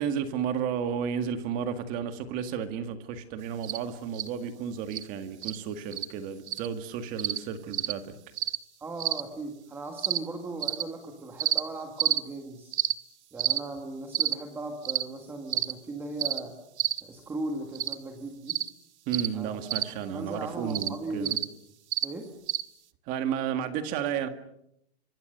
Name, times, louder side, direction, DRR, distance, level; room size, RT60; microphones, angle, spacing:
voice 1, 0.0-8.1 19.1-21.4 23.1-24.3, right 8 dB, 25° right, 9 dB, 1.9 m, -32 dB
Cricket chirping, 3.6-3.8 4.1-4.3 4.9-5.0 5.4-5.6 5.9-6.1 6.5-6.7 7.2-7.4 7.7-7.9 8.4-8.6 9.0-9.2 10.0-10.2 10.6-10.8 11.4-11.6 12.0-12.2 12.7-12.9 13.4-13.6 14.1-14.3 14.9-15.0 15.5-15.7 16.2-16.4 16.8-17.0 17.8-18.0 18.5-18.7 19.1-19.3 19.7-19.9 20.7-20.9 21.3-21.5 21.9-22.1 22.5-22.6, right 11 dB, 85° right, 1.9 m, -28 dB
voice 2, 8.8-12.8 13.3-16.6 17.0-18.6 19.3-21.4 22.0-22.3, right 2 dB, 5° right, 4 dB, 1.7 m, -38 dB
28.0 x 25.5 x 6.7 m, 0.78 s
supercardioid pair, 170°, 33 cm